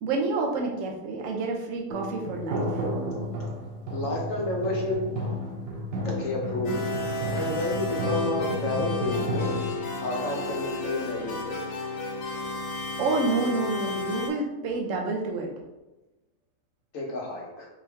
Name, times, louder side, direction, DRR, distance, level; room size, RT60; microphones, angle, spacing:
voice 1, 0.0-2.8 13.0-15.5, right 3 dB, 60° right, 1 dB, 1.1 m, -28 dB
sound 1, 1.9-9.7, equal, 90° right, 1.4 m, -32 dB
voice 2, 3.9-5.3 6.0-6.8 7.3-9.5 10.0-11.6 16.9-17.7, left 2 dB, 55° left, -1 dB, 1.3 m, -30 dB
sound 2, 6.6-14.3, left 2 dB, 85° left, 1.3 m, -32 dB
4.6 x 2.7 x 3.4 m, 1.1 s
omnidirectional pair, 1.7 m